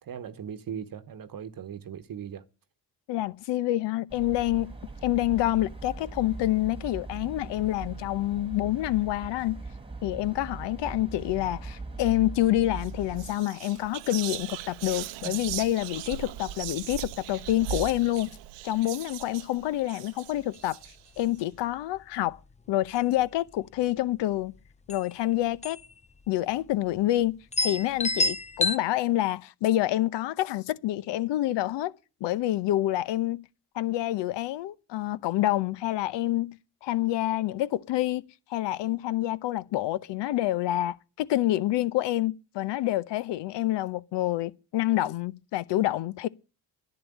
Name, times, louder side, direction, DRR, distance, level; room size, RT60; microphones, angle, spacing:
voice 1, 0.0-2.4, right 8 dB, 50° right, 1.1 m, -39 dB
voice 2, 3.1-4.7 5.0-9.6 10.0-18.4 18.6-20.8 21.2-22.4 22.7-24.5 24.9-25.8 26.3-31.9 32.2-33.5 33.7-38.2 38.5-46.3, left 15 dB, 70° left, 0.8 m, -27 dB
sound 1, 4.1-13.4, right 3 dB, 10° right, 1.7 m, -40 dB
Whispering, 12.7-12.9 13.2-21.3, right 13 dB, 85° right, 0.8 m, -38 dB
sound 2, 20.4-20.6 20.9-21.0 21.4-21.7 22.3-22.5 22.8-23.5 24.5-24.6 24.9-25.1 25.6-25.9 26.2-26.3 27.0-27.1 27.5-28.8, left 2 dB, 15° left, 0.6 m, -28 dB
11.0 x 8.3 x 8.5 m
supercardioid pair, 55°, 43 cm